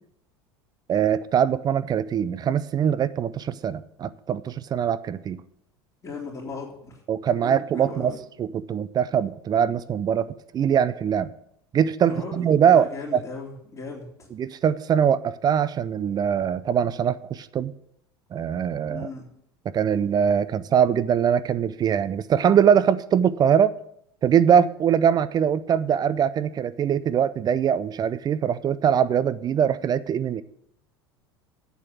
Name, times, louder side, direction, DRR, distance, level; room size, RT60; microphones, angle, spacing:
voice 1, 0.9-5.4 7.1-8.1 8.4-11.3 11.7-13.2 14.4-17.7 18.3-19.1 19.7-23.7 24.2-30.4, right 8 dB, 30° right, 0.5 m, -22 dB
voice 2, 6.0-7.0 7.4-8.2 12.0-14.3 18.8-19.3, left 3 dB, 25° left, 3.0 m, -37 dB
8.3 x 7.5 x 8.3 m
figure-of-eight pair, 75°, 14 cm